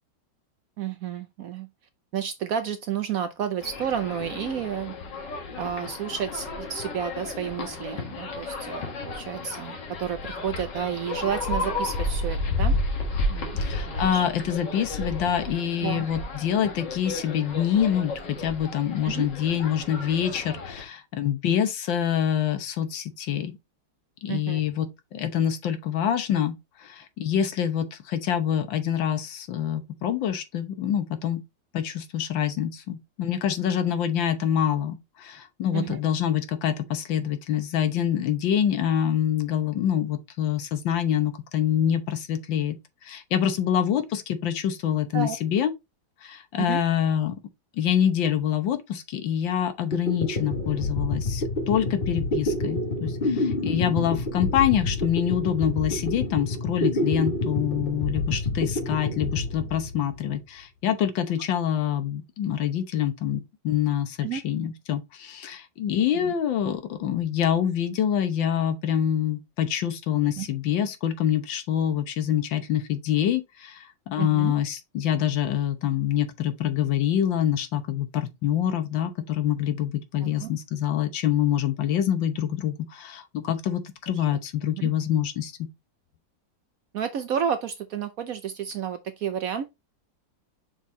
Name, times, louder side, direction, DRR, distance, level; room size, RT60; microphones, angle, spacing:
voice 1, 0.8-1.7 2.1-5.0 5.6-12.7 13.3-13.6 13.9-14.2 15.8-16.1 19.0-19.3 24.3-24.6 35.7-36.0 45.1-45.4 46.6-46.8 64.2-64.4 66.1-66.3 70.3-70.5 74.2-74.5 80.2-80.5 84.2-84.4 84.7-84.9 86.9-89.7, right 8 dB, 65° right, 0.9 m, -31 dB
sound 1, 3.6-20.8, left 2 dB, 70° left, 2.2 m, -32 dB
voice 2, 13.6-23.5 24.2-31.4 31.7-42.8 43.0-45.7 46.2-47.4 47.8-85.7, left 9 dB, 85° left, 1.7 m, -26 dB
sound 2, 49.6-49.7 49.9-60.4, left 2 dB, 35° left, 1.3 m, -28 dB
6.1 x 4.2 x 3.7 m
omnidirectional pair, 2.0 m